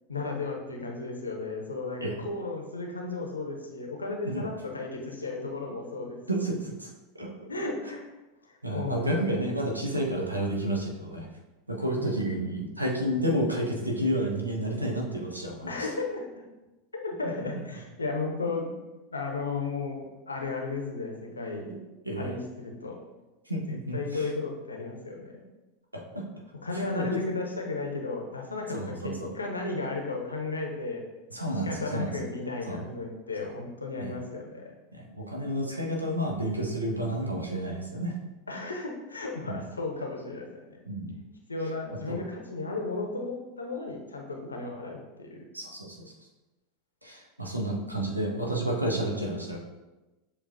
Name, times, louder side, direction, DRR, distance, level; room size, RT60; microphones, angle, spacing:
voice 1, 0.1-6.5 7.5-8.0 8.7-9.3 12.0-12.1 15.7-16.5 16.9-18.7 19.1-21.6 22.1-23.0 23.9-25.4 26.6-28.8 29.0-31.0 31.6-34.7 38.5-40.8 41.5-45.4, left 3 dB, 80° left, 1 dB, 0.6 m, -34 dB
voice 2, 6.3-6.9 7.1-7.3 8.6-11.3 11.7-15.9 21.7-21.8 22.1-22.3 23.5-24.3 25.9-26.3 26.7-27.0 28.7-29.3 31.3-32.1 32.7-32.8 34.0-34.1 34.9-38.1 39.4-39.5 40.9-41.2 41.9-42.2 45.5-46.0 47.0-49.6, right 1 dB, 85° right, -1 dB, 0.6 m, -30 dB
7.0 x 2.3 x 2.6 m, 1.1 s
figure-of-eight pair, 85°, 0 cm